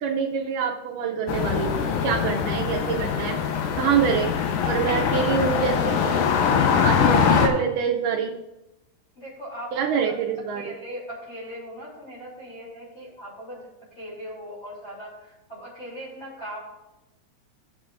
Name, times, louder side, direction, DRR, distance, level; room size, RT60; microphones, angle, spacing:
voice 1, 0.0-3.4 3.8-4.3 4.6-8.4 9.7-10.8, right 7 dB, 80° right, 0 dB, 2.1 m, -26 dB
sound 1, 1.3-7.5, left 7 dB, 85° left, 2.6 m, -23 dB
voice 2, 9.1-10.1 10.5-13.7 13.9-16.6, equal, 20° left, -7 dB, 2.9 m, -39 dB
14.5 x 7.3 x 2.5 m, 0.96 s
omnidirectional pair, 4.0 m